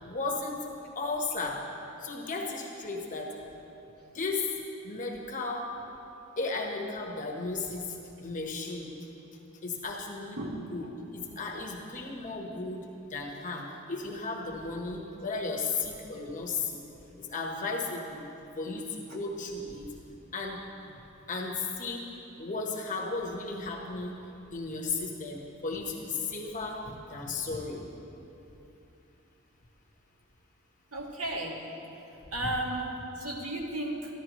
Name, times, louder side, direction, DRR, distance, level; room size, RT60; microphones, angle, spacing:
voice 1, 0.0-0.6 0.9-1.6 2.0-3.3 4.0-4.4 4.8-5.6 6.4-8.9 9.6-10.4 10.7-10.9 11.1-12.8 13.1-16.8 17.2-18.2 18.6-19.9 20.3-21.0 21.3-22.0 22.4-24.1 24.5-27.8, left 3 dB, 35° left, -1 dB, 1.1 m, -35 dB
voice 2, 30.9-31.6 32.3-34.1, right 1 dB, 70° right, -2 dB, 1.7 m, -34 dB
14.5 x 11.5 x 3.1 m, 3.0 s
head